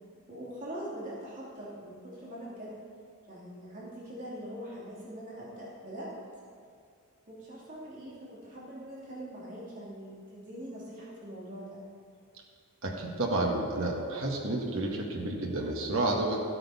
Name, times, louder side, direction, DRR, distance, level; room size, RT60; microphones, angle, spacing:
voice 1, 0.3-2.8 3.3-6.1 7.3-11.8, right 1 dB, 35° right, -7 dB, 2.8 m, -42 dB
voice 2, 12.8-16.4, right 2 dB, 65° right, -1 dB, 1.8 m, -30 dB
14.0 x 8.9 x 5.7 m, 2.2 s
head